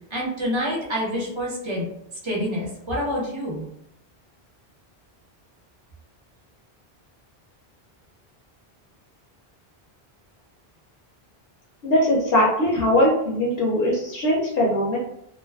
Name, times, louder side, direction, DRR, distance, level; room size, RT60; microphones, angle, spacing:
voice 1, 0.1-1.9 2.2-3.7, equal, 30° right, -4 dB, 0.7 m, -27 dB
voice 2, 11.8-15.0, left 1 dB, 70° left, -3 dB, 0.8 m, -21 dB
2.3 x 2.3 x 2.2 m, 0.77 s
omnidirectional pair, 1.0 m